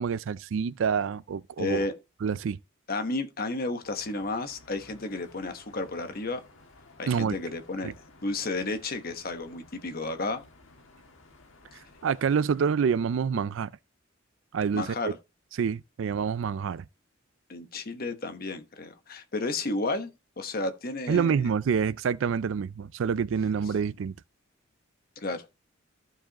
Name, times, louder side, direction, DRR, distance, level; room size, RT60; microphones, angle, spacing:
voice 1, 0.0-1.9 2.2-2.6 7.1-7.4 7.8-7.9 12.0-13.7 14.5-15.1 15.6-16.8 21.1-24.1, right 6 dB, 65° right, 0.3 m, -27 dB
voice 2, 1.6-1.9 2.9-6.4 7.0-7.9 8.2-10.4 11.7-11.8 14.7-15.1 17.5-20.1 20.4-21.5 25.2-25.4, left 2 dB, 45° left, 1.1 m, -32 dB
sound 1, 3.8-12.7, left 2 dB, 75° left, 1.5 m, -55 dB
14.0 x 4.9 x 2.9 m
head